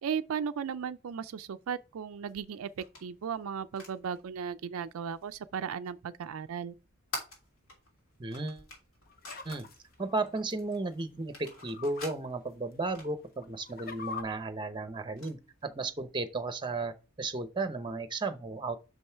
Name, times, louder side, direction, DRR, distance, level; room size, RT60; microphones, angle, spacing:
voice 1, 0.0-6.8, right 7 dB, 70° right, 0.4 m, -36 dB
sound 1, 2.3-18.1, left 2 dB, 70° left, 3.1 m, -51 dB
voice 2, 8.2-8.7 9.4-9.7 10.0-18.8, right 3 dB, 20° right, 0.8 m, -34 dB
sound 2, 9.1-10.4 11.3-12.0 12.5-12.6 13.3-14.2, left 5 dB, 45° left, 0.8 m, -44 dB
6.3 x 5.4 x 4.5 m
head